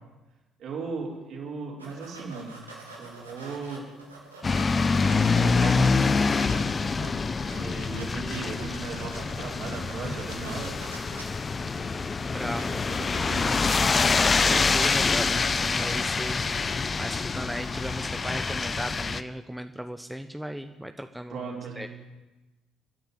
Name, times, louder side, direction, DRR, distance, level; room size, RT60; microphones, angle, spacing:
voice 1, 0.6-2.6 3.0-3.9 4.9-7.2 7.5-10.7 11.6-11.9 12.6-14.0 21.3-21.9, right 4 dB, 55° right, -1 dB, 5.0 m, -38 dB
sound 1, 1.8-5.5 5.9-6.6 6.9-7.0 7.3-12.1 12.5-13.0, right 2 dB, 90° right, 3.2 m, -46 dB
sound 2, 4.4-19.2, left 4 dB, 30° left, 0.9 m, -26 dB
voice 2, 12.2-12.8 14.4-16.4 17.0-21.4 21.8-21.9, equal, 5° right, 8 dB, 1.2 m, -36 dB
28.0 x 10.5 x 9.5 m, 1.1 s
figure-of-eight pair, 50°, 0 cm